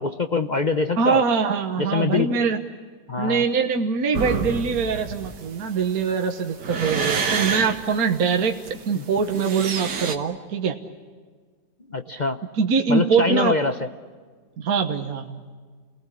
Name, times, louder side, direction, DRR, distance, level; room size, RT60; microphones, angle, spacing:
voice 1, 0.0-1.2 1.8-2.3 3.1-3.4 8.9-9.0 11.9-12.4 12.9-13.9, left 3 dB, 40° left, 9 dB, 0.6 m, -24 dB
voice 2, 1.0-2.6 3.2-8.5 8.9-10.8 12.6-13.5 14.6-15.4, right 5 dB, 60° right, 4 dB, 1.7 m, -23 dB
sound 1, 4.1-10.2, right 5 dB, 75° right, 2.2 m, -28 dB
29.0 x 18.5 x 9.9 m, 1.6 s
omnidirectional pair, 1.9 m